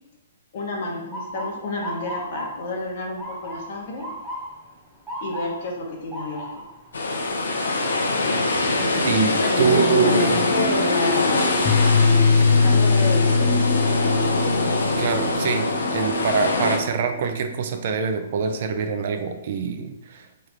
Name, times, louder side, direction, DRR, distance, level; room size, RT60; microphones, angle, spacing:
voice 1, 0.5-4.1 5.2-6.6 9.4-11.6 11.8-13.6, left 2 dB, 55° left, 0 dB, 0.8 m, -30 dB
Motor vehicle (road) / Siren, 1.1-13.0 13.5-13.9 14.7-15.0 16.9-17.1 17.6-17.7 18.1-18.8, equal, 5° right, 0.8 m, -39 dB
sound 1, 6.9-16.8, left 2 dB, 90° left, 0.6 m, -23 dB
voice 2, 9.0-10.4 15.0-20.5, right 6 dB, 55° right, 7 dB, 0.4 m, -24 dB
sound 2, 9.5-17.7, left 4 dB, 25° left, 0.5 m, -22 dB
3.2 x 2.4 x 3.2 m, 0.88 s
hypercardioid pair, 140°, 0 cm